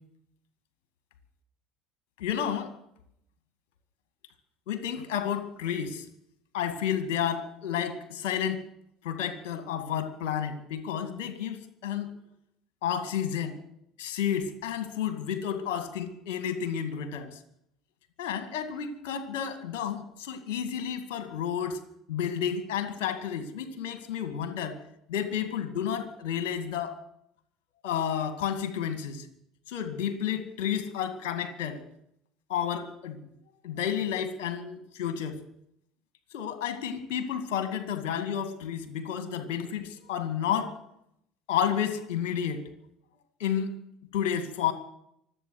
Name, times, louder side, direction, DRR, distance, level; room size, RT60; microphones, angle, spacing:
voice 1, 2.2-2.7 4.7-6.1 6.5-8.6 9.0-12.1 12.8-13.6 14.0-17.4 18.2-21.8 22.1-24.8 25.1-27.0 27.8-29.3 29.7-31.8 32.5-33.3 33.6-35.4 36.3-40.8 41.5-42.6 43.4-43.7 44.1-44.7, left 8 dB, 65° left, 9 dB, 2.0 m, -31 dB
24.5 x 8.4 x 6.5 m, 0.74 s
figure-of-eight pair, 60°, 0 cm